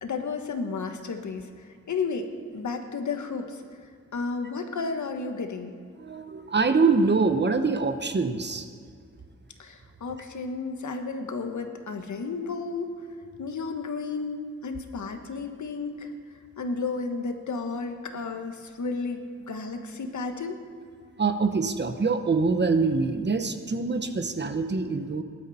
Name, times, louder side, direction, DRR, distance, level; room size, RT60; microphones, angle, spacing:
voice 1, 0.0-3.6 4.1-5.7 9.6-12.9 13.4-16.1 16.6-20.6, left 4 dB, 80° left, 6 dB, 1.4 m, -32 dB
voice 2, 6.0-8.7 21.2-25.2, right 4 dB, 35° right, 8 dB, 0.9 m, -24 dB
18.5 x 12.0 x 4.2 m, 2.2 s
wide cardioid pair, 135°, 29 cm